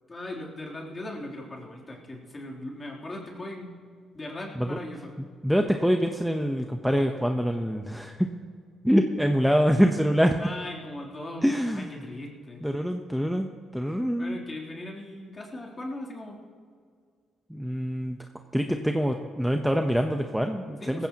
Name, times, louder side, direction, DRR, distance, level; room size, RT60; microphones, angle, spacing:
voice 1, 0.1-3.8 4.1-5.1 10.4-12.6 14.2-16.4 20.8-21.1, left 1 dB, 25° left, -2 dB, 3.2 m, -39 dB
voice 2, 5.4-8.3 8.8-10.4 11.4-11.9 12.6-14.4 17.5-18.2 18.5-21.1, equal, ahead, 4 dB, 0.8 m, -25 dB
18.0 x 15.5 x 2.9 m, 2.1 s
cardioid pair, 90°, 0 cm